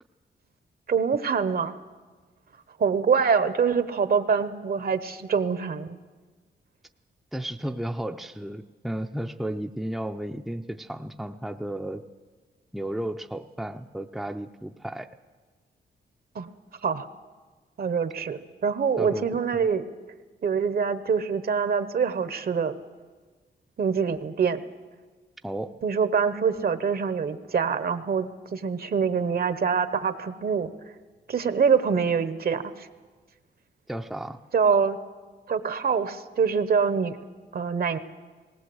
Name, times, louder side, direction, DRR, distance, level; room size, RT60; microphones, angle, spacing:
voice 1, 0.9-1.7 2.8-6.0 16.3-16.5 16.8-17.1 17.8-19.8 20.4-22.7 23.8-24.6 25.8-30.7 31.3-32.9 34.5-35.0 35.5-37.2 37.5-38.0, right 6 dB, 55° right, 12 dB, 1.0 m, -25 dB
voice 2, 7.3-12.0 12.7-15.1 19.0-19.3 25.4-25.7 33.9-34.4, right 1 dB, ahead, 6 dB, 0.6 m, -33 dB
19.0 x 18.0 x 7.9 m, 1.4 s
wide cardioid pair, 110°, 19 cm